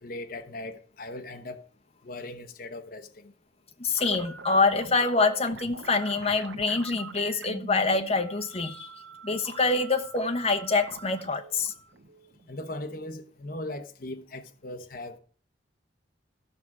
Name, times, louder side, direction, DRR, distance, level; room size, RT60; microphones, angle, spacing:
voice 1, 0.0-1.7 2.0-3.3 12.5-15.2, left 2 dB, 50° left, 0.9 m, -39 dB
voice 2, 3.8-8.9 9.2-11.7, left 3 dB, 35° left, 1.2 m, -26 dB
sound 1, 4.0-12.9, right 5 dB, 75° right, 1.0 m, -45 dB
14.5 x 6.0 x 4.8 m
head